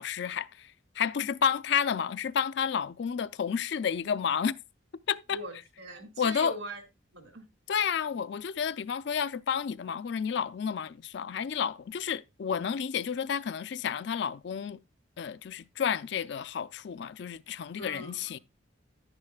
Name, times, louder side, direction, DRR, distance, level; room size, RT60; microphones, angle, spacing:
voice 1, 0.0-4.6 5.1-5.4 6.2-6.5 7.7-14.8 15.2-18.4, left 7 dB, 60° left, 0.4 m, -31 dB
voice 2, 5.3-6.8 7.1-7.4 17.8-18.4, right 2 dB, 75° right, 2.3 m, -42 dB
10.5 x 9.8 x 2.3 m
head